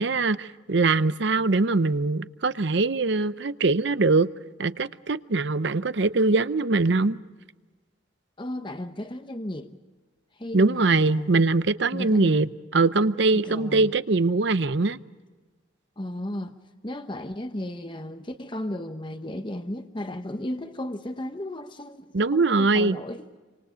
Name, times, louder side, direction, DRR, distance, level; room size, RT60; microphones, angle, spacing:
voice 1, 0.0-4.3 4.6-7.2 10.5-12.5 12.7-15.0 22.1-23.0, right 3 dB, 60° right, 0.7 m, -22 dB
voice 2, 8.4-9.8 10.3-11.4 11.9-12.4 13.3-13.9 16.0-16.6 16.8-23.3, left 1 dB, 25° left, 1.0 m, -35 dB
27.5 x 26.5 x 5.1 m
head